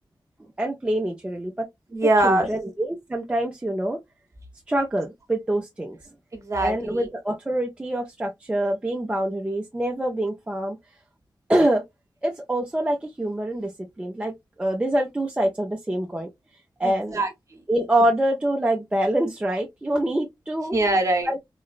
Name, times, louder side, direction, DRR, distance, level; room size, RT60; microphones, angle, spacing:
voice 1, 0.6-1.7 2.2-4.0 4.7-6.0 6.6-10.8 11.5-11.8 12.2-13.7 14.0-16.3 16.8-17.2 17.7-20.8 21.3-21.4, right 1 dB, 15° right, 0.4 m, -25 dB
voice 2, 1.9-2.5 6.3-7.0 16.8-17.6 20.7-21.3, right 2 dB, 40° right, 0.9 m, -23 dB
3.8 x 2.1 x 2.3 m
wide cardioid pair, 160°, 8 cm